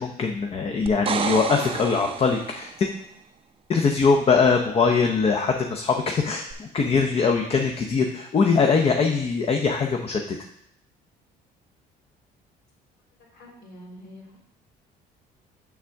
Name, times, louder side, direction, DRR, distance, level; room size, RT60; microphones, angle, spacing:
voice 1, 0.0-2.9 3.7-10.2, left 5 dB, 35° left, 3 dB, 0.6 m, -22 dB
sound 1, 0.9-2.8 6.5-6.6, right 7 dB, 35° right, 0.5 m, -30 dB
voice 2, 13.3-14.4, equal, 75° left, -4 dB, 3.1 m, -45 dB
7.1 x 3.5 x 6.3 m, 0.74 s
cardioid pair, 110°, 17 cm